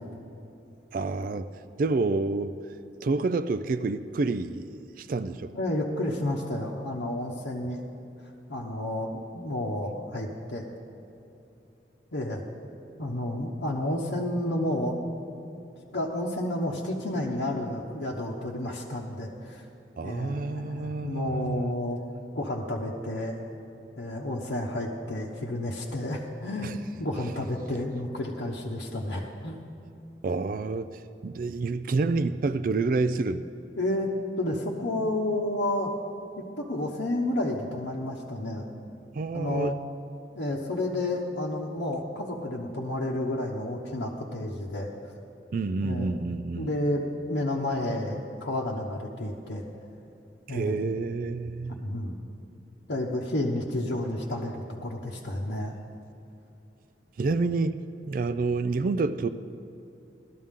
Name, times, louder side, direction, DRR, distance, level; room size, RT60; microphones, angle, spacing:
voice 1, 0.9-1.5 1.8-2.6 3.0-5.6 20.0-21.8 26.6-26.8 27.2-27.3 30.2-33.4 39.1-39.7 45.5-46.7 50.5-51.9 57.2-57.8 58.0-59.3, right 3 dB, 50° right, 12 dB, 0.3 m, -28 dB
voice 2, 5.5-7.8 8.5-10.6 12.1-12.4 13.0-15.1 15.9-19.6 20.0-22.0 22.3-23.5 24.0-29.7 33.8-34.1 34.4-35.9 36.4-38.6 39.3-39.8 40.3-44.9 45.8-46.2 46.5-49.6 50.5-50.9 51.8-52.2 52.9-55.7, left 1 dB, 80° left, -4 dB, 1.0 m, -31 dB
17.5 x 12.5 x 3.7 m, 2.8 s
head